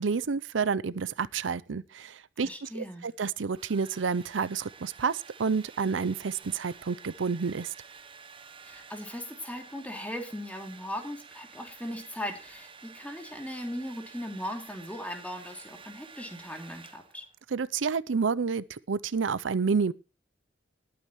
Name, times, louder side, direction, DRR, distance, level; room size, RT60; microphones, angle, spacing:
voice 1, 0.0-7.7 17.5-19.9, right 5 dB, 90° right, 0.6 m, -29 dB
voice 2, 2.4-3.1 8.6-17.2, equal, 10° left, 2.8 m, -38 dB
Domestic sounds home sounds, 3.1-17.4, right 5 dB, 30° right, 1.0 m, -51 dB
20.0 x 8.8 x 3.1 m
head